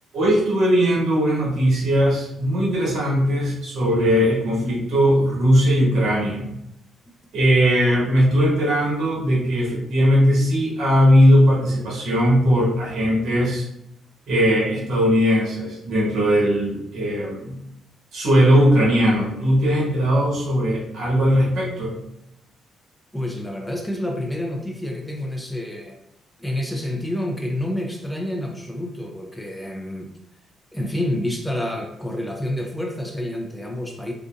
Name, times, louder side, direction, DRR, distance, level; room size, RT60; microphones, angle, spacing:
voice 1, 0.1-6.5 7.3-13.7 14.3-17.6 18.1-21.9, equal, 70° right, -4 dB, 1.4 m, -19 dB
voice 2, 23.1-26.0 26.4-30.1 30.7-34.1, left 1 dB, 10° left, 1 dB, 0.5 m, -28 dB
3.7 x 2.6 x 2.5 m, 0.79 s
cardioid pair, 90°, 0 cm